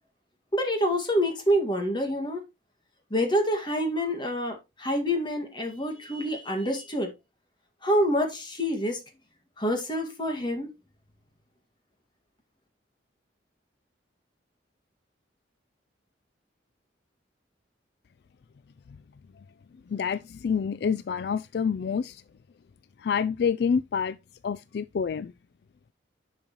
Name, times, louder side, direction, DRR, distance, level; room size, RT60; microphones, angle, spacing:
voice 1, 0.5-2.4 3.1-7.1 7.8-9.0 9.6-10.7, equal, 25° left, 2.0 m, -27 dB
voice 2, 19.9-22.2 23.0-24.2 24.4-25.3, left 6 dB, 60° left, 0.3 m, -27 dB
11.0 x 5.4 x 3.0 m
head